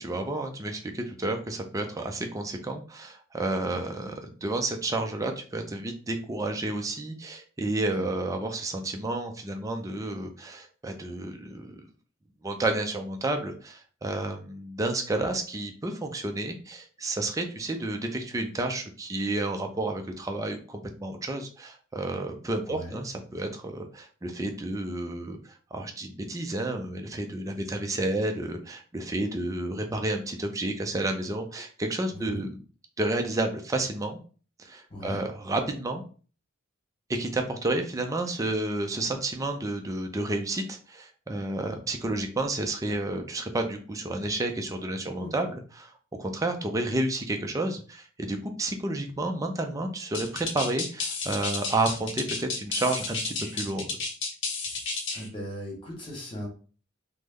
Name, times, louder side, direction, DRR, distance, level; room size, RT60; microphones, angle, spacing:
voice 1, 0.0-11.8 12.4-32.6 33.0-34.2 34.6-36.0 37.1-45.9 46.2-54.0, right 2 dB, 15° right, 4 dB, 0.4 m, -31 dB
voice 2, 22.7-23.0 32.1-32.4 34.9-35.2 44.9-45.3 55.1-56.5, left 1 dB, 25° left, -2 dB, 1.2 m, -39 dB
sound 1, 50.1-55.3, left 4 dB, 60° left, 0.7 m, -32 dB
3.2 x 2.0 x 3.5 m, 0.39 s
head